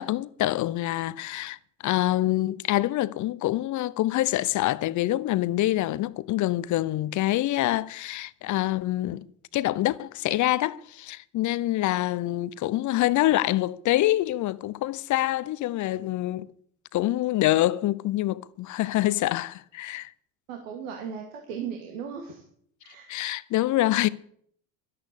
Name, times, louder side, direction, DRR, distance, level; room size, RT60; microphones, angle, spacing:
voice 1, 0.0-1.6 1.8-9.2 9.5-16.5 16.9-20.1 23.1-24.1, left 15 dB, 45° left, 0.8 m, -26 dB
voice 2, 20.5-22.4 22.8-23.1, right 7 dB, 75° right, 2.3 m, -36 dB
11.5 x 11.0 x 8.3 m
hypercardioid pair, 70°, 40 cm